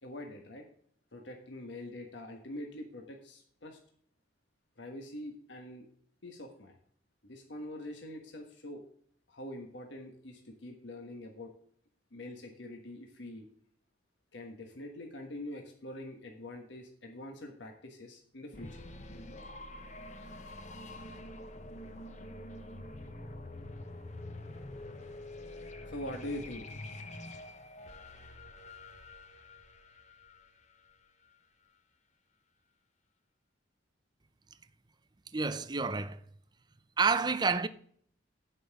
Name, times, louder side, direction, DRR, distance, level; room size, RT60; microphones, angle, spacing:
voice 1, 0.0-0.6 1.1-3.8 4.8-5.8 6.2-6.8 7.2-8.8 9.3-11.5 12.1-13.5 14.3-18.8 25.9-27.3, left 1 dB, 70° left, 1.4 m, -44 dB
sound 1, 18.5-31.2, left 1 dB, 40° left, 0.9 m, -46 dB
voice 2, 35.3-36.2 37.0-37.7, right 4 dB, 20° right, 0.5 m, -29 dB
16.5 x 5.5 x 3.5 m
head